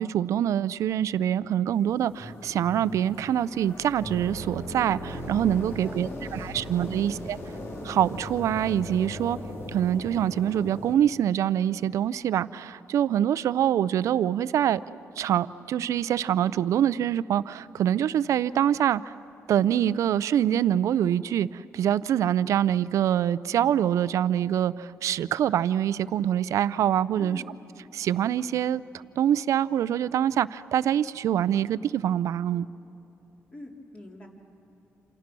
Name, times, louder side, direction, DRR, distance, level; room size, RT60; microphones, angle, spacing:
voice 1, 0.0-7.4 7.8-9.4 9.7-19.1 19.5-27.4 27.9-28.8 29.2-32.7, right 10 dB, 80° right, 17 dB, 0.5 m, -25 dB
sound 1, 1.7-10.9, left 1 dB, 55° left, 3.7 m, -38 dB
voice 2, 5.5-7.1 27.2-27.5 33.5-34.3, left 1 dB, 25° left, 0 dB, 3.6 m, -45 dB
28.5 x 27.5 x 6.2 m, 2.9 s
cardioid pair, 115°, 5 cm